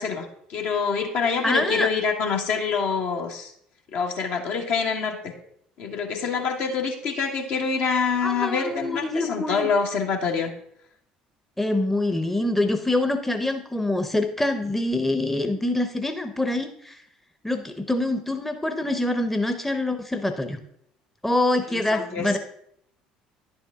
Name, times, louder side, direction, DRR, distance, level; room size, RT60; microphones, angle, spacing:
voice 1, 0.0-3.5 3.9-5.3 5.8-10.5 21.7-22.4, left 5 dB, 60° left, 2 dB, 1.4 m, -26 dB
voice 2, 1.4-1.9 8.2-9.7 11.6-17.0 17.4-20.6 21.2-22.4, left 2 dB, 5° left, 7 dB, 0.8 m, -25 dB
10.5 x 6.9 x 3.6 m, 0.71 s
figure-of-eight pair, 60°, 4 cm